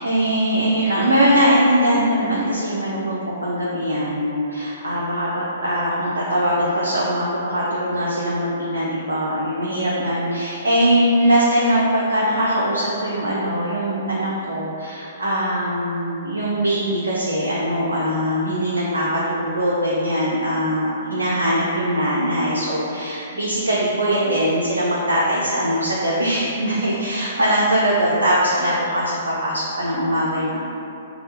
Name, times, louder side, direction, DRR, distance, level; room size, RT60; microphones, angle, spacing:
voice 1, 0.0-30.6, equal, 70° right, -6 dB, 0.5 m, -21 dB
3.4 x 2.3 x 4.2 m, 2.8 s
figure-of-eight pair, 115°, 0 cm